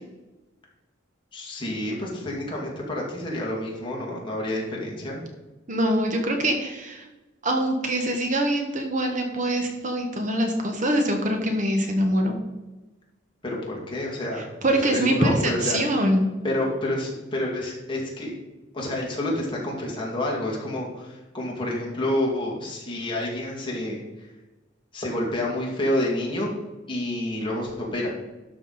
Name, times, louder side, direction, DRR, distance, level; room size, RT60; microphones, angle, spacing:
voice 1, 1.3-5.2 13.4-15.8 16.4-18.3 18.7-24.3 24.9-26.5 26.9-28.1, left 1 dB, 25° left, -3 dB, 2.4 m, -29 dB
voice 2, 5.7-7.1 7.4-12.4 14.6-16.3, right 1 dB, 40° right, 3 dB, 1.2 m, -24 dB
12.5 x 5.9 x 4.1 m, 1.1 s
head